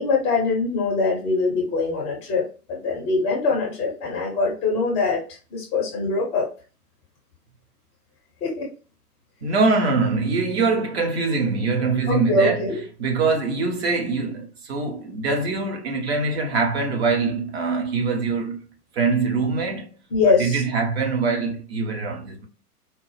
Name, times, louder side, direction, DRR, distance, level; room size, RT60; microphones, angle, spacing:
voice 1, 0.0-2.4 2.7-5.2 5.5-6.5 8.4-8.7 12.1-12.8 20.1-20.6, left 3 dB, 15° left, 0.6 m, -22 dB
voice 2, 9.4-12.7 13.0-18.6 18.9-19.9 20.4-22.5, right 4 dB, 45° right, 1.0 m, -23 dB
4.4 x 2.0 x 3.2 m
figure-of-eight pair, 115°, 46 cm